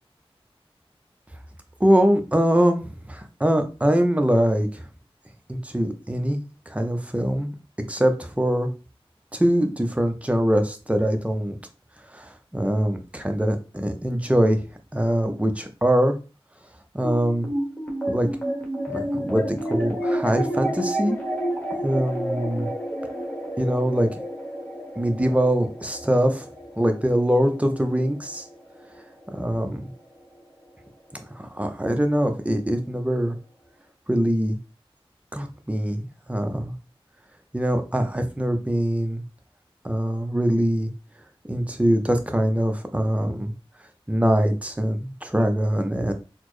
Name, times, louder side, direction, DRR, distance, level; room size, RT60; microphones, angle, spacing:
voice 1, 1.8-4.8 5.5-7.5 7.9-8.7 9.3-11.6 12.1-14.7 14.9-16.2 16.9-17.5 18.1-18.3 18.9-21.2 21.8-22.7 23.6-24.1 25.0-26.5 26.8-28.5 29.3-29.9 31.4-33.4 34.1-34.6 35.3-36.7 37.5-39.2 39.8-40.9 41.5-43.5 44.1-46.1, equal, 15° right, 5 dB, 0.6 m, -23 dB
sound 1, 17.0-29.6, equal, 15° left, 1.2 m, -30 dB
4.0 x 2.0 x 3.1 m, 0.32 s
wide cardioid pair, 65°, 10 cm